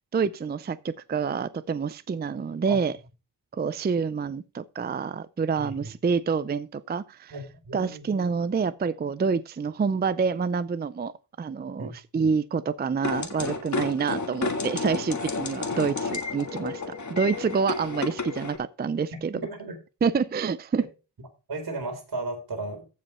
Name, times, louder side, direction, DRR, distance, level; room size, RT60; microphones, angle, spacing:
voice 1, 0.1-2.9 3.5-7.3 7.7-11.1 11.4-16.8 17.1-19.4 20.0-20.9, right 5 dB, 25° right, 0.4 m, -27 dB
voice 2, 5.6-5.9 7.3-8.0 11.8-11.9 19.4-19.8 21.5-22.8, right 2 dB, 60° right, 4.2 m, -34 dB
sound 1, 13.0-18.6, left 4 dB, 45° left, 1.6 m, -31 dB
14.5 x 5.3 x 4.2 m
wide cardioid pair, 140°, 41 cm